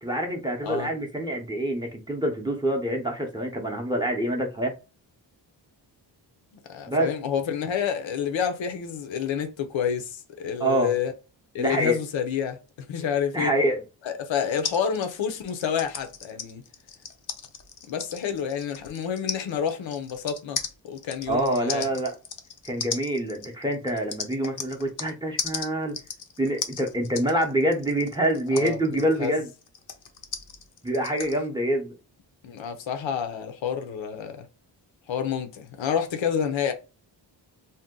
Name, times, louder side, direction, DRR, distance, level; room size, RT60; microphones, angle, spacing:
voice 1, 0.0-4.7 6.9-7.1 10.6-10.9 11.6-12.0 13.3-13.8 21.3-22.2 22.6-25.9 26.4-29.5 30.8-32.0, right 1 dB, 10° right, 0.6 m, -26 dB
voice 2, 6.7-11.1 11.5-13.5 14.1-16.6 17.9-20.6 20.8-21.9 28.5-29.4 32.4-34.5 35.1-36.7, left 7 dB, 80° left, 0.7 m, -29 dB
sound 1, 14.6-25.1 25.4-31.4, left 6 dB, 45° left, 0.5 m, -36 dB
2.7 x 2.1 x 3.6 m
wide cardioid pair, 105°, 45 cm